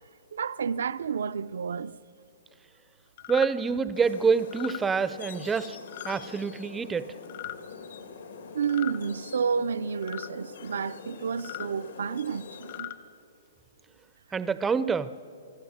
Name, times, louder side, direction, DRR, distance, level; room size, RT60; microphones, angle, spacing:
voice 1, 0.3-2.0 8.5-12.9, right 6 dB, 85° right, 0.6 m, -30 dB
sound 1, 3.2-3.5 4.4-4.8 5.9-6.2 7.2-7.6 8.6-9.0 10.0-10.3 11.3-11.7 12.5-13.0, left 16 dB, 45° left, 1.0 m, -38 dB
voice 2, 3.3-5.8 6.0-7.1 14.3-15.1, right 5 dB, 10° right, 0.5 m, -26 dB
sound 2, 3.9-12.8, left 5 dB, 80° left, 2.7 m, -44 dB
28.5 x 20.0 x 7.2 m
hypercardioid pair, 170°, 0 cm